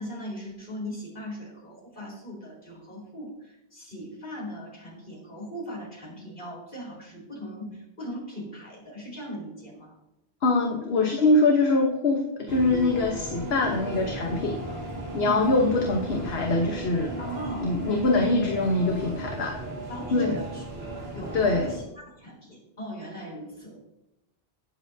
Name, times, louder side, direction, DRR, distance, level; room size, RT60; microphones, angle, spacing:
voice 1, 0.0-9.9 15.2-15.6 17.2-18.4 19.9-23.8, equal, 55° left, -3 dB, 4.3 m, -39 dB
voice 2, 10.4-14.6 15.1-17.1 17.6-19.6 20.1-20.4 21.3-21.7, left 2 dB, 70° left, 1 dB, 1.3 m, -23 dB
sound 1, 12.5-21.8, right 1 dB, 70° right, 2.2 m, -35 dB
19.5 x 7.4 x 2.7 m, 0.92 s
omnidirectional pair, 1.1 m